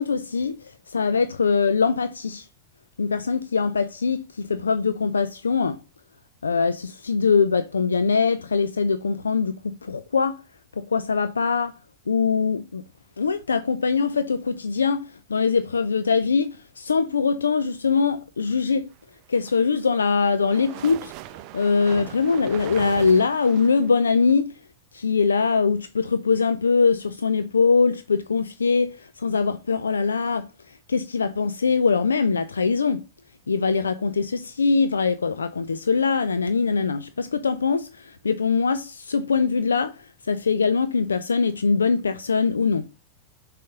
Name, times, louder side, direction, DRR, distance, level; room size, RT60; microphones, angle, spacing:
voice 1, 0.0-2.5 3.0-5.8 6.4-10.4 10.8-11.7 12.1-12.8 13.2-18.9 19.3-24.6 24.9-33.0 33.5-42.9, left 5 dB, 75° left, 0.4 m, -22 dB
sound 1, 19.2-24.3, right 15 dB, 40° right, 0.4 m, -40 dB
6.4 x 4.2 x 6.4 m
figure-of-eight pair, 90°, 0 cm